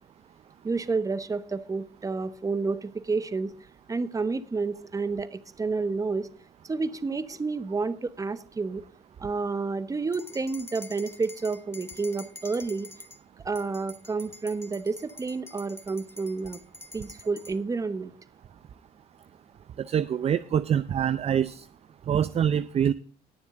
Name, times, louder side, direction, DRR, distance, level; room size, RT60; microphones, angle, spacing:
voice 1, 0.6-3.5 3.9-6.3 6.6-8.8 9.2-12.9 13.4-16.6 16.9-18.1, right 4 dB, 20° right, 13 dB, 1.0 m, -30 dB
sound 1, 10.1-13.2 13.5-17.5, left 1 dB, 15° left, 1.9 m, -46 dB
voice 2, 19.8-21.6 22.1-22.9, right 9 dB, 35° right, 15 dB, 0.5 m, -25 dB
20.0 x 7.1 x 3.8 m, 0.40 s
cardioid pair, 110°, 17 cm